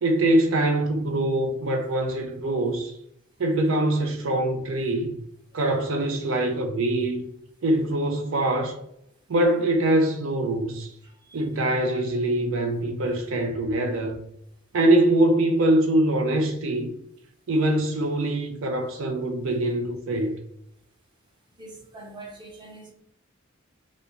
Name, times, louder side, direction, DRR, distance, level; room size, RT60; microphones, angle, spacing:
voice 1, 0.0-3.0 3.4-5.2 5.5-7.2 7.6-8.8 9.3-10.9 11.3-14.2 14.7-16.9 17.5-20.3, right 1 dB, 70° right, 0.5 m, -23 dB
voice 2, 11.0-11.4 21.6-22.9, right 2 dB, 20° right, 0.8 m, -44 dB
3.4 x 2.6 x 2.8 m
head